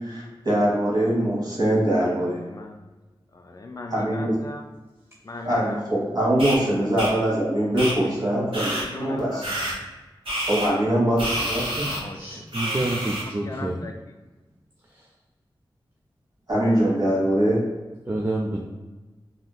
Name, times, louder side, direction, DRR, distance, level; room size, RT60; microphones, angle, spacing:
voice 1, 0.0-2.4 3.9-4.4 5.4-8.7 9.0-9.5 10.5-11.9 16.5-17.6, right 1 dB, 50° right, -5 dB, 1.5 m, -22 dB
voice 2, 2.5-2.8 3.3-4.6 5.2-5.8 6.8-6.9 9.3-9.8 11.8-13.9, left 2 dB, 40° left, 3 dB, 0.3 m, -39 dB
sound 1, 6.4-6.6 7.0-7.1 7.8-7.9 8.5-8.8 9.4-9.7 10.3-10.7 11.2-12.0 12.5-13.2, right 1 dB, 75° right, 1.0 m, -28 dB
voice 3, 12.1-13.8 18.1-18.6, right 2 dB, 25° right, -2 dB, 0.4 m, -28 dB
3.5 x 2.7 x 2.3 m, 1.2 s
wide cardioid pair, 55°, 9 cm